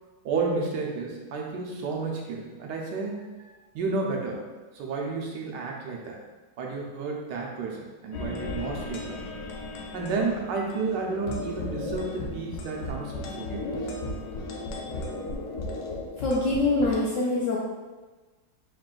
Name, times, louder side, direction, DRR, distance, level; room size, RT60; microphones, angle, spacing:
voice 1, 0.2-4.4 4.7-6.2 6.6-9.2 9.9-13.7, right 4 dB, 85° right, -1 dB, 1.3 m, -31 dB
sound 1, 8.1-17.0, left 2 dB, 90° left, 1.3 m, -35 dB
voice 2, 16.2-17.6, left 2 dB, 70° left, -4 dB, 0.7 m, -24 dB
3.5 x 2.4 x 3.7 m, 1.2 s
omnidirectional pair, 1.8 m